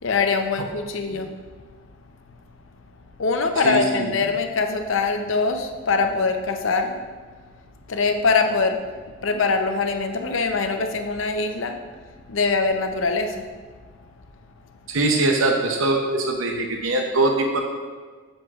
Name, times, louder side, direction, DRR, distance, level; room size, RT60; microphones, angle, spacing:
voice 1, 0.0-1.3 3.2-7.0 7.9-8.8 9.2-11.8 12.3-13.5, left 4 dB, 65° left, 5 dB, 0.6 m, -23 dB
voice 2, 3.6-4.1 14.9-17.6, right 2 dB, 75° right, 2 dB, 0.7 m, -22 dB
7.9 x 7.8 x 2.4 m, 1.5 s
head